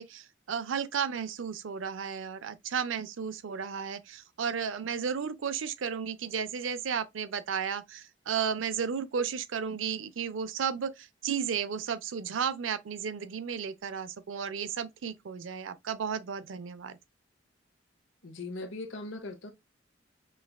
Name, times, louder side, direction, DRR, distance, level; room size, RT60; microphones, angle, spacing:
voice 1, 0.0-17.0, right 7 dB, 85° right, 0.5 m, -33 dB
voice 2, 18.2-19.5, left 2 dB, 85° left, 0.8 m, -39 dB
5.4 x 2.4 x 2.2 m
head